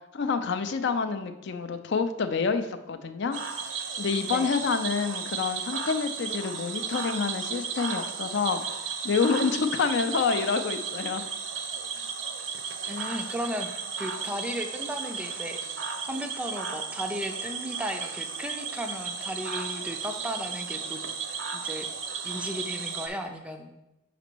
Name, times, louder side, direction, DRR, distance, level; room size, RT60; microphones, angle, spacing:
voice 1, 0.1-3.4 4.0-8.6 9.0-11.2, left 5 dB, 55° left, 9 dB, 0.4 m, -27 dB
Cricket / Frog, 3.3-23.1, right 5 dB, 60° right, 0.6 m, -34 dB
voice 2, 12.9-13.7 14.0-15.6 16.1-21.0 21.5-21.9 22.2-23.7, equal, 5° right, 5 dB, 0.4 m, -35 dB
5.1 x 5.0 x 4.5 m, 0.97 s
head